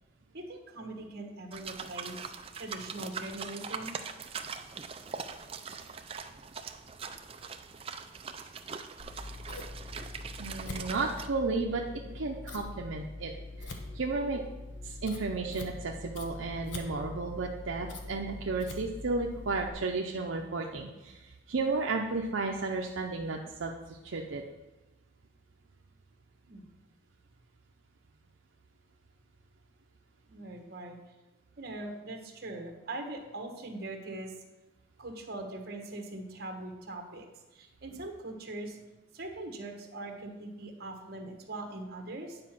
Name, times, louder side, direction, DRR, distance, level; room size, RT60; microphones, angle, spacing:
voice 1, 0.3-4.0 26.5-26.7 30.3-31.0 31.6-34.3 35.0-37.3 37.5-38.8 39.1-42.4, right 2 dB, 50° right, 3 dB, 1.3 m, -41 dB
sound 1, 1.5-11.3, right 5 dB, 30° right, 0.4 m, -42 dB
Scissors, 9.0-19.7, left 2 dB, 60° left, 1.0 m, -43 dB
voice 2, 10.4-13.3 13.6-14.4 14.8-24.4, right 3 dB, 75° right, 1 dB, 0.6 m, -33 dB
9.6 x 4.9 x 5.9 m, 1.0 s
head